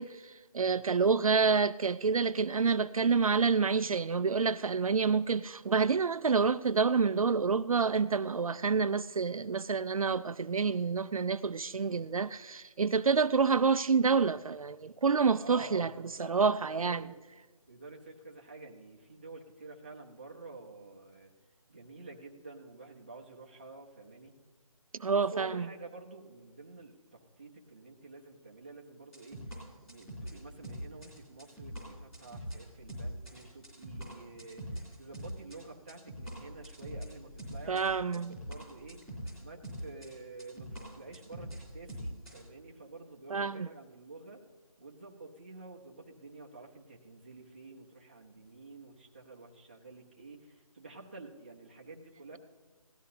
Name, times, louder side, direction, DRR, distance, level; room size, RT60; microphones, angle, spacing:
voice 1, 0.0-15.9 16.3-17.0 25.0-25.6 37.7-38.3 43.3-43.7, right 5 dB, 65° right, 0.4 m, -28 dB
voice 2, 15.4-17.1 17.7-21.3 21.7-24.3 25.1-29.4 29.8-39.0 39.4-44.4 44.8-52.4, right 3 dB, 15° right, 0.7 m, -49 dB
sound 1, 29.1-35.6 35.9-42.4, equal, 5° left, 3.0 m, -43 dB
17.5 x 12.5 x 2.8 m
figure-of-eight pair, 175°, 19 cm